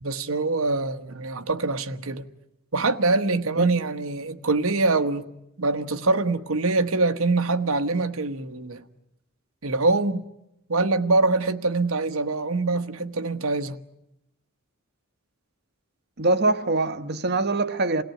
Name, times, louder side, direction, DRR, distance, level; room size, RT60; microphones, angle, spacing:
voice 1, 0.0-2.3 2.7-5.3 5.6-8.9 9.6-10.3 10.7-13.8, right 3 dB, 75° right, 1.3 m, -24 dB
voice 2, 16.2-18.0, right 2 dB, 50° right, 1.1 m, -23 dB
28.5 x 18.0 x 9.1 m
head